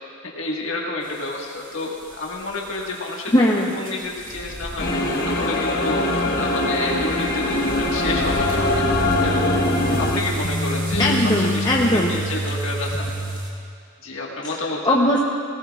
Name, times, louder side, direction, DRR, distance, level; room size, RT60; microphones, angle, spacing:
voice 1, 0.2-3.3 3.7-4.9 5.2-8.8 9.2-13.1 14.0-15.0, left 2 dB, 65° left, -3 dB, 1.7 m, -30 dB
sound 1, 1.0-13.5, right 1 dB, 60° right, 2.4 m, -38 dB
voice 2, 3.3-3.7 11.0-12.1 14.9-15.2, left 1 dB, 20° left, -3 dB, 0.8 m, -19 dB
sound 2, 4.8-10.2, left 2 dB, 45° left, 1.5 m, -22 dB
sound 3, 8.2-13.4, right 1 dB, 85° left, 1.5 m, -27 dB
19.0 x 17.5 x 2.4 m, 2.4 s
head